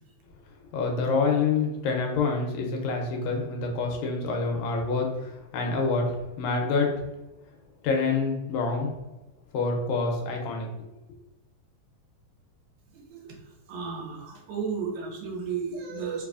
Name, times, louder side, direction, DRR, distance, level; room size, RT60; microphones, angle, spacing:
voice 1, 0.7-7.0 7.8-8.9 9.5-10.7, left 4 dB, 75° left, 1 dB, 1.7 m, -27 dB
voice 2, 12.9-16.2, right 5 dB, 90° right, 0 dB, 2.2 m, -34 dB
4.7 x 2.5 x 2.4 m, 0.97 s
omnidirectional pair, 3.4 m